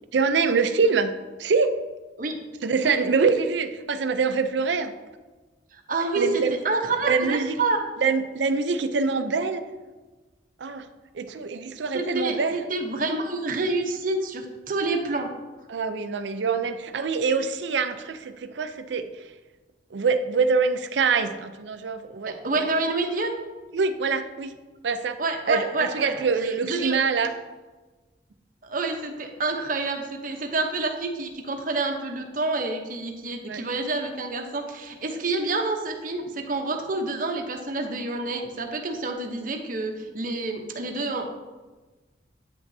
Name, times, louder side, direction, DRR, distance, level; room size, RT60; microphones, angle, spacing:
voice 1, 0.1-1.1 1.4-1.7 2.6-4.9 6.2-6.6 7.1-7.6 8.0-9.6 10.6-10.9 11.1-12.6 15.7-19.1 19.9-22.4 23.7-24.5 24.8-25.2 25.5-27.3 33.5-33.6, right 5 dB, 75° right, 9 dB, 0.5 m, -24 dB
voice 2, 5.7-7.8 11.9-15.3 22.3-23.3 25.2-27.0 28.6-41.2, right 3 dB, 50° right, 4 dB, 0.8 m, -28 dB
8.6 x 5.9 x 2.7 m, 1.2 s
head